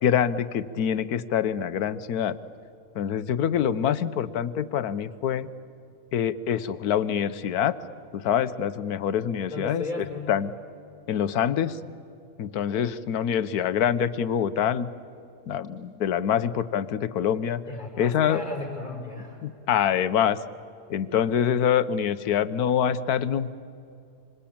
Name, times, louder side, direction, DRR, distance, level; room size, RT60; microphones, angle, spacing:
voice 1, 0.0-2.4 2.9-5.5 6.1-7.8 8.1-10.5 11.1-11.8 12.4-14.9 15.5-17.6 18.0-18.4 19.4-20.4 20.9-23.5, left 9 dB, 85° left, 14 dB, 1.4 m, -25 dB
voice 2, 9.5-10.4 12.7-12.8 17.7-19.4, left 3 dB, 30° left, -1 dB, 5.8 m, -35 dB
26.0 x 26.0 x 8.7 m, 2.5 s
omnidirectional pair, 1.6 m